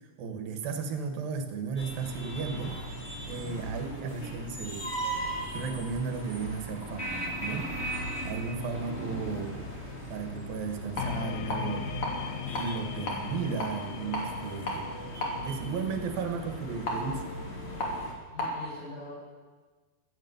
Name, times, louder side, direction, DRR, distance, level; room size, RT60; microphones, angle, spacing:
voice 1, 0.2-4.9 5.5-7.7 8.2-9.6 10.1-12.0 12.6-14.9 15.4-17.3, right 5 dB, 85° right, 6 dB, 3.3 m, -35 dB
sound 1, 1.8-18.1, right 1 dB, 20° left, 2.6 m, -38 dB
voice 2, 3.2-3.5 18.3-19.1, left 3 dB, 65° left, -8 dB, 6.4 m, -43 dB
sound 2, 10.8-18.6, left 1 dB, 40° left, 3.7 m, -37 dB
sound 3, 11.0-18.2, left 10 dB, 90° left, 2.6 m, -40 dB
15.5 x 10.5 x 8.0 m, 1.4 s
omnidirectional pair, 4.0 m